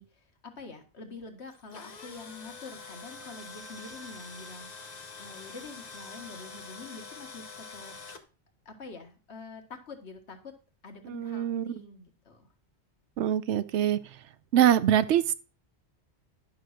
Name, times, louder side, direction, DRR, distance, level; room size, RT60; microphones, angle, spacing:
voice 1, 0.0-4.7 5.2-7.9 8.6-10.5 10.8-12.5, left 3 dB, 70° left, 4 dB, 1.8 m, -46 dB
Tools, 1.5-8.2, left 4 dB, 40° left, 0.9 m, -45 dB
voice 2, 11.1-11.8 13.2-14.0 14.5-15.3, right 10 dB, 90° right, 13 dB, 0.9 m, -24 dB
11.0 x 3.8 x 6.4 m, 0.35 s
omnidirectional pair, 1.2 m